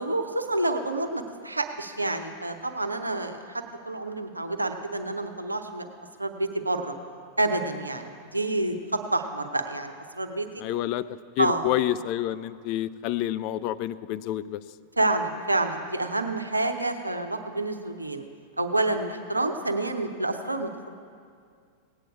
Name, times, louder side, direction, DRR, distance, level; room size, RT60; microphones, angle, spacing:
voice 1, 0.0-5.9 6.2-6.9 7.4-10.6 11.4-11.7 15.0-18.3 18.6-20.9, right 2 dB, 85° right, 6 dB, 0.8 m, -28 dB
voice 2, 10.6-11.0 11.4-14.6, left 13 dB, 45° left, 14 dB, 0.3 m, -28 dB
17.5 x 9.1 x 4.7 m, 2.2 s
figure-of-eight pair, 90°, 0 cm